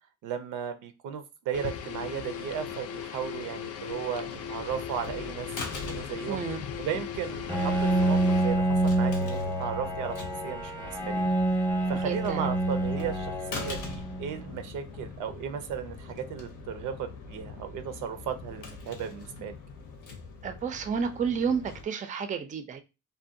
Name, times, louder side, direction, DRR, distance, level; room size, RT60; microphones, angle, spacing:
voice 1, 0.2-6.4 6.8-11.2 11.5-19.5, right 8 dB, 85° right, 0.5 m, -35 dB
sound 1, 1.5-8.6, left 8 dB, 55° left, 0.4 m, -38 dB
sound 2, 4.3-21.8, left 4 dB, 85° left, 0.7 m, -43 dB
voice 2, 6.3-6.6 12.0-12.5 20.4-22.8, right 6 dB, 25° right, 0.4 m, -31 dB
Bowed string instrument, 7.5-14.6, right 1 dB, 5° left, 0.7 m, -27 dB
2.5 x 2.2 x 2.6 m
cardioid pair, 90°, 30 cm